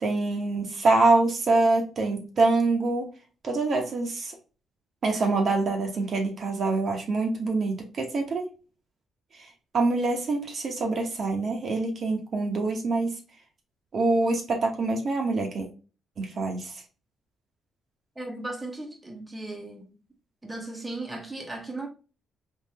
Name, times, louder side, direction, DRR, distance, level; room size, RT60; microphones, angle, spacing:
voice 1, 0.0-3.1 3.4-4.3 5.0-8.5 9.4-9.5 9.7-13.2 13.9-15.7 16.2-16.8, right 3 dB, 50° right, 1.0 m, -25 dB
voice 2, 18.2-20.0 20.4-21.9, right 2 dB, 10° right, 1.0 m, -36 dB
3.6 x 2.6 x 2.8 m
cardioid pair, 90°, 0 cm